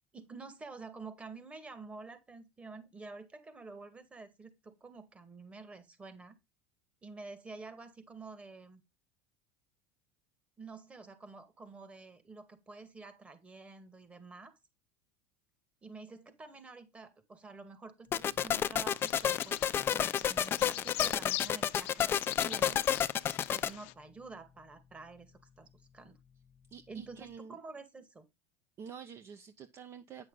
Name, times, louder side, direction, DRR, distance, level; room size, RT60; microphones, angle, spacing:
voice 1, 0.1-6.4 7.0-8.8 10.6-14.6 15.8-19.6 19.9-22.9 23.5-25.7 25.9-26.2 26.9-28.3, right 3 dB, 20° right, 2.1 m, -49 dB
sound 1, 18.1-23.7, left 9 dB, 35° left, 0.6 m, -30 dB
Bird vocalization bird call bird song, 18.9-23.9, left 18 dB, 70° left, 0.7 m, -42 dB
voice 2, 26.7-27.6 28.8-30.3, right 7 dB, 40° right, 1.0 m, -48 dB
9.7 x 6.3 x 4.0 m
supercardioid pair, 110°, 7 cm